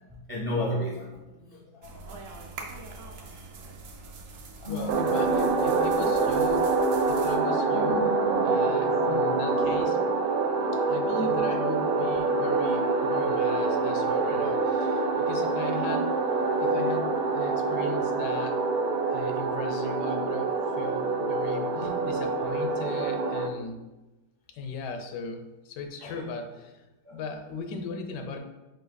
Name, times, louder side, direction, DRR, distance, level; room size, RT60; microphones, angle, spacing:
voice 1, 0.1-2.1 3.4-3.5 4.6-5.2 7.5-9.2 10.6-10.7 11.3-11.4 21.7-21.9 22.5-22.6 26.0-26.2 27.1-27.2, left 1 dB, 45° right, -5 dB, 0.4 m, -35 dB
sound 1, 1.8-7.4, right 3 dB, 60° right, 0.9 m, -44 dB
voice 2, 4.7-8.1 8.4-10.0 10.7-16.1 16.6-18.6 19.1-23.8 24.5-26.8 27.1-28.4, left 4 dB, 85° left, 6 dB, 1.2 m, -37 dB
sound 2, 4.9-23.5, right 3 dB, 80° right, 1.2 m, -26 dB
5.0 x 2.6 x 3.9 m, 1.0 s
omnidirectional pair, 1.8 m